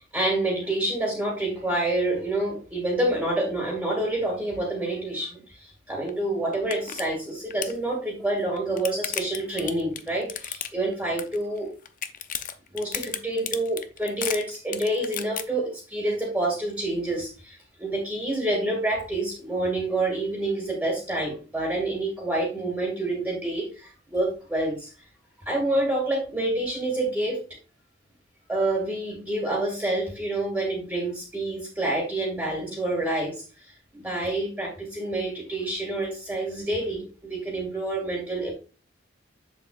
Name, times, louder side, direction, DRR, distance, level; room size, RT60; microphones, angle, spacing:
voice 1, 0.0-11.7 12.7-24.9 25.5-27.5 28.5-38.5, right 1 dB, 10° right, -2 dB, 2.0 m, -28 dB
sound 1, 6.1-6.2 6.5-7.0 7.3-7.8 8.4-10.9 11.2-11.6 11.9-15.4, left 9 dB, 45° left, 0.6 m, -33 dB
7.6 x 7.2 x 2.4 m, 0.34 s
head